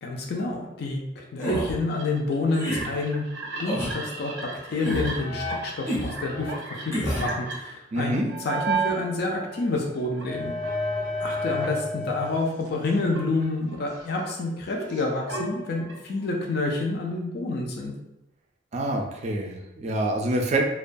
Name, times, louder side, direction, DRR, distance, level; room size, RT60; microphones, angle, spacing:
voice 1, 0.0-3.2 3.6-10.5 11.2-17.9, left 2 dB, 60° left, 0 dB, 0.4 m, -28 dB
sound 1, 1.4-1.8 2.5-2.9 3.6-4.0 4.8-5.2 5.9-6.1 6.9-7.3, equal, 15° left, 0.6 m, -28 dB
sound 2, 1.9-9.0 9.5-12.4 12.7-16.3, right 1 dB, 85° right, 0.6 m, -33 dB
voice 2, 7.9-8.3 18.7-20.6, right 1 dB, 40° right, 2 dB, 0.4 m, -26 dB
2.2 x 2.2 x 2.5 m, 0.91 s
head